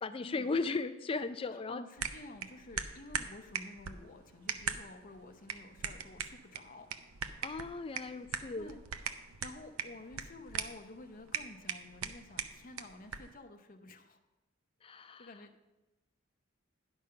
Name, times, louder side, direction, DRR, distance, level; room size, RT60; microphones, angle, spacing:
voice 1, 0.0-1.8 7.4-8.7 14.8-15.3, left 3 dB, 25° left, 11 dB, 0.4 m, -36 dB
voice 2, 1.5-6.9 8.6-8.8 9.4-14.2 15.2-15.6, left 2 dB, 40° left, 5 dB, 0.8 m, -51 dB
Snapping Fingers, 2.0-13.4, right 7 dB, 90° right, 0.6 m, -41 dB
11.0 x 5.2 x 5.7 m, 1.1 s
head